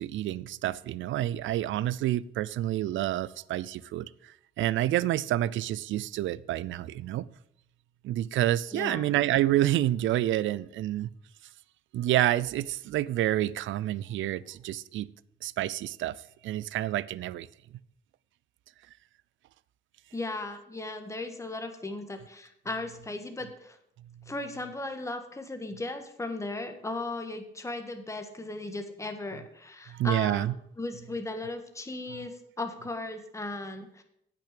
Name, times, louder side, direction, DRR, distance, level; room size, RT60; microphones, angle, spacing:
voice 1, 0.0-4.1 4.6-7.2 8.0-11.1 11.9-15.1 15.4-16.1 16.4-17.5 29.9-30.5, right 13 dB, 75° right, 0.5 m, -28 dB
voice 2, 8.7-9.1 20.1-23.8 24.3-30.5 30.8-34.0, left 2 dB, 15° left, 1.6 m, -36 dB
8.7 x 6.2 x 8.3 m
cardioid pair, 90°, 20 cm